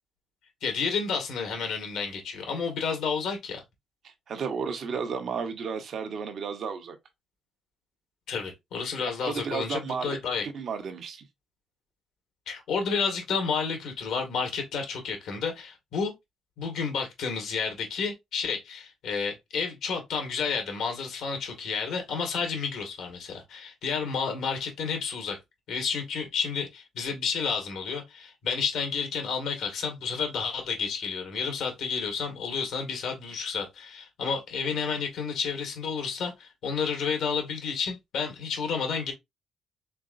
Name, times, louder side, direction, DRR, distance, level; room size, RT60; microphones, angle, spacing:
voice 1, 0.6-3.6 8.3-10.4 12.5-16.1 16.6-25.4 25.7-39.1, left 5 dB, 80° left, 2.0 m, -31 dB
voice 2, 4.0-7.0 9.2-10.2 10.4-11.3, right 6 dB, 60° right, 1.1 m, -33 dB
4.5 x 3.7 x 2.6 m
cardioid pair, 80°, 0 cm